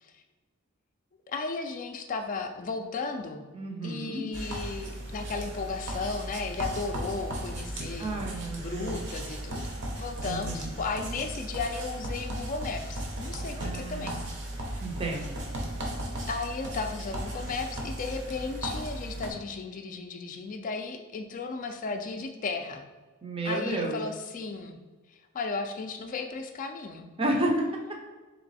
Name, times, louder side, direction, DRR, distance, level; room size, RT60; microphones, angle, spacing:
voice 1, 1.3-3.4 3.8-8.2 8.6-14.2 16.3-22.8 23.5-24.8 25.3-27.1, left 4 dB, 35° left, 5 dB, 0.3 m, -35 dB
voice 2, 3.5-4.3 8.0-9.0 10.2-10.7 13.6-14.4 14.8-15.4 23.2-24.0 27.2-27.7, right 1 dB, 25° right, 1 dB, 0.5 m, -31 dB
sound 1, 4.3-19.3, right 1 dB, 55° right, 0.8 m, -36 dB
3.3 x 3.0 x 4.0 m, 1.3 s
head